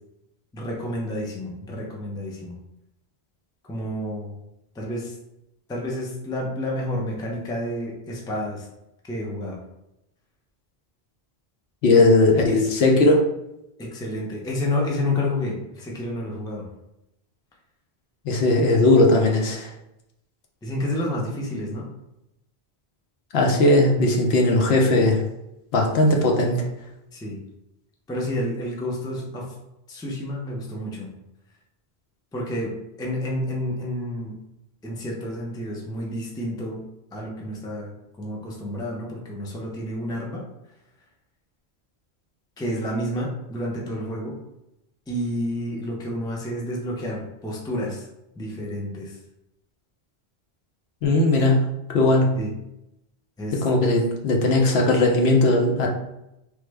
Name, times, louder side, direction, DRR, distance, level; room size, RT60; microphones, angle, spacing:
voice 1, 0.5-2.5 3.7-4.3 4.7-5.2 5.7-8.7 9.0-9.6 11.9-12.0 12.5-12.7 13.8-16.7 20.6-21.9 27.1-27.4 28.1-29.5 29.9-31.1 32.3-32.7 33.0-34.4 34.8-36.8 37.1-40.4 42.6-44.3 45.1-48.1 48.4-49.2 52.4-52.5 53.4-53.6, left 1 dB, 5° left, -2 dB, 0.4 m, -30 dB
voice 2, 11.8-13.2 18.2-19.7 23.3-25.2 25.7-26.6 51.0-52.3 53.6-55.9, left 2 dB, 80° left, 1 dB, 0.9 m, -18 dB
3.2 x 2.1 x 3.3 m, 0.87 s
omnidirectional pair, 1.1 m